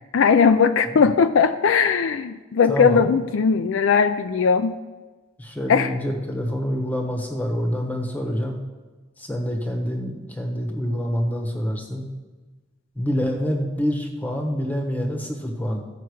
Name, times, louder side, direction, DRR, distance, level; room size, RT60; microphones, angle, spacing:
voice 1, 0.1-4.8 5.7-5.9, left 6 dB, 65° left, 9 dB, 0.4 m, -19 dB
voice 2, 2.7-3.1 5.4-8.6 9.2-12.1 12.9-15.9, equal, 10° left, 3 dB, 1.1 m, -26 dB
14.5 x 5.8 x 4.7 m, 1.3 s
head